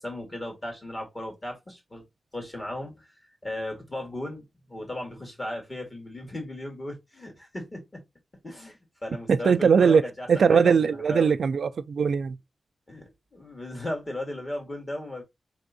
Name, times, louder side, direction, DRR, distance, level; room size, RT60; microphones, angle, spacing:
voice 1, 0.0-2.0 2.3-3.1 3.4-8.0 8.4-11.4 12.9-15.2, left 1 dB, 25° left, 2.0 m, -36 dB
voice 2, 9.3-10.0 10.3-12.4, right 6 dB, 70° right, 0.3 m, -20 dB
3.5 x 3.5 x 4.0 m
wide cardioid pair, 135°, 0 cm